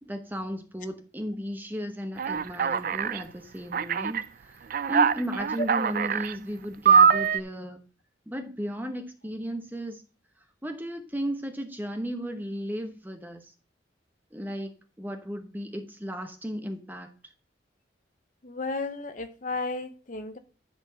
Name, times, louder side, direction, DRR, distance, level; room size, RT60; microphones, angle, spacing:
voice 1, 0.0-7.8 8.3-10.0 10.6-13.5 14.3-14.7 15.0-17.1, equal, 10° right, 5 dB, 0.9 m, -35 dB
Alarm, 2.2-3.2 3.7-4.2 4.7-6.3 6.9-7.4, right 6 dB, 45° right, 0.3 m, -22 dB
voice 2, 18.4-20.4, left 3 dB, 45° left, 10 dB, 0.7 m, -33 dB
11.0 x 4.3 x 5.7 m, 0.38 s
head